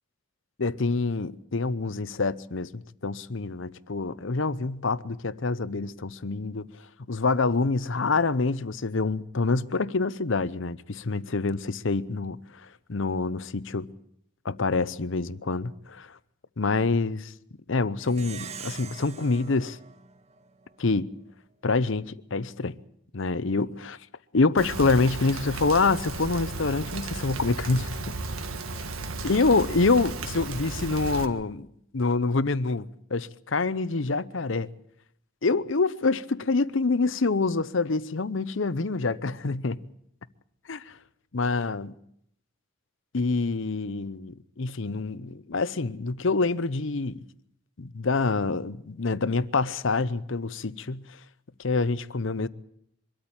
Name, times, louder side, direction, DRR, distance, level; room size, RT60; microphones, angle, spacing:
voice 1, 0.6-6.7 7.1-13.9 14.4-16.2 16.6-17.3 17.7-19.8 20.8-21.1 21.6-22.8 23.1-24.0 24.3-27.9 29.2-31.7 31.9-34.7 35.4-39.8 40.7-41.0 41.3-41.9 43.1-47.2 47.8-51.0 51.6-52.5, left 3 dB, 60° left, 0.8 m, -26 dB
Plucked string instrument, 18.0-20.9, right 6 dB, 30° right, 0.7 m, -43 dB
Rain, 24.6-31.2, right 3 dB, 75° right, 1.6 m, -34 dB
24.0 x 13.5 x 8.8 m
head